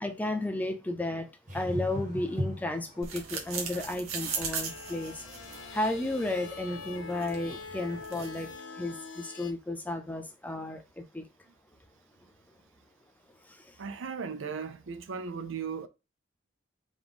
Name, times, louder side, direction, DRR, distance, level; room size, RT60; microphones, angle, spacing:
voice 1, 0.0-5.2 5.7-8.5 8.8-11.3 13.5-13.7, left 1 dB, 10° left, 0.5 m, -33 dB
sound 1, 1.5-8.0, equal, 40° right, 1.3 m, -41 dB
sound 2, 3.0-8.6, right 6 dB, 90° right, 1.0 m, -39 dB
sound 3, 4.3-9.5, left 4 dB, 70° left, 0.8 m, -44 dB
voice 2, 13.8-15.9, right 5 dB, 65° right, 0.5 m, -37 dB
4.0 x 3.0 x 3.5 m
head